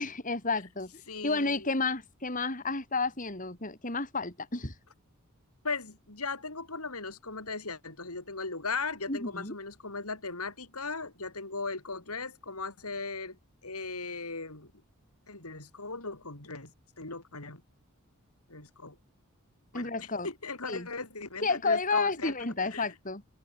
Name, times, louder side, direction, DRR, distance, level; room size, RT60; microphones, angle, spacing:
voice 1, 0.0-0.9 1.2-4.7 9.1-9.5 19.7-20.3 20.7-20.9 21.4-23.2, left 3 dB, 35° left, 4.8 m, -31 dB
voice 2, 1.1-1.7 5.6-14.7 15.3-17.6 18.5-19.0 19.7-22.3 22.6-22.9, left 4 dB, 85° left, 6.0 m, -38 dB
head